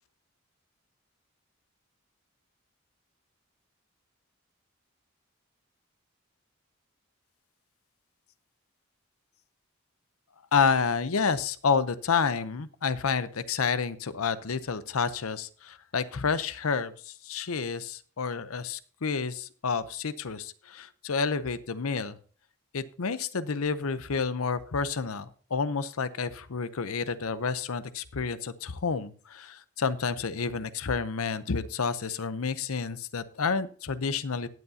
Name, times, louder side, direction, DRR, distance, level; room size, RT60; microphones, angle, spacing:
voice 1, 10.5-22.2 22.7-34.5, left 5 dB, 75° left, 15 dB, 0.7 m, -29 dB
18.5 x 8.1 x 2.7 m, 0.40 s
head